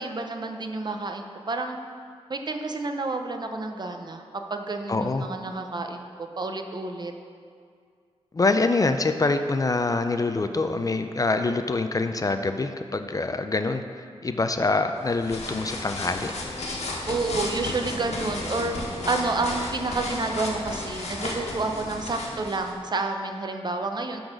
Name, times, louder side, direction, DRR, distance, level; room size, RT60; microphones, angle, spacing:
voice 1, 0.0-1.8 2.3-4.2 4.5-7.1 17.1-18.8 19.0-24.2, right 3 dB, 40° right, 5 dB, 0.7 m, -29 dB
voice 2, 4.9-5.3 8.3-13.8 14.2-16.3, left 3 dB, 30° left, 8 dB, 0.4 m, -25 dB
sound 1, 15.0-22.7, left 2 dB, 80° left, 1.4 m, -33 dB
11.5 x 3.9 x 6.0 m, 2.2 s
wide cardioid pair, 100°, 11 cm